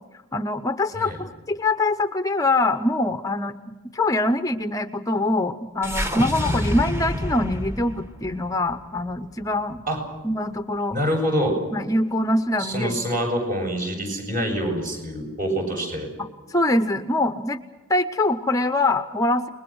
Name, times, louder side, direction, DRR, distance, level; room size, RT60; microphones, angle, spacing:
voice 1, 0.3-3.5 3.9-9.8 10.2-11.0 11.7-13.0 16.5-17.6 17.9-19.5, left 2 dB, 15° left, 9 dB, 0.7 m, -23 dB
sound 1, 5.8-10.1, left 1 dB, 10° right, 1.3 m, -29 dB
voice 2, 10.9-11.5 12.6-16.1, equal, 40° right, 2 dB, 8.0 m, -25 dB
29.5 x 21.0 x 6.3 m, 1.2 s
head